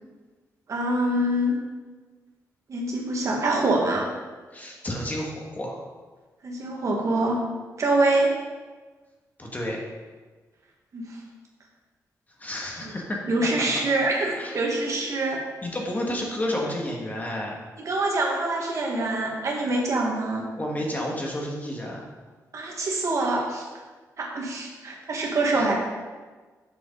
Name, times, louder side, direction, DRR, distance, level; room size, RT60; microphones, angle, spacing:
voice 1, 0.7-1.6 2.7-4.1 6.4-7.4 7.8-8.3 10.9-11.2 12.8-12.9 13.3-15.4 17.8-20.5 22.5-23.7 24.2-25.7, right 2 dB, 55° right, -1 dB, 1.6 m, -25 dB
voice 2, 4.5-5.8 9.4-9.8 12.4-13.2 14.3-14.6 15.6-17.5 20.6-22.1 25.5-25.7, left 1 dB, 25° left, -1 dB, 1.5 m, -31 dB
6.8 x 5.0 x 5.2 m, 1.4 s
cardioid pair, 90°, 6 cm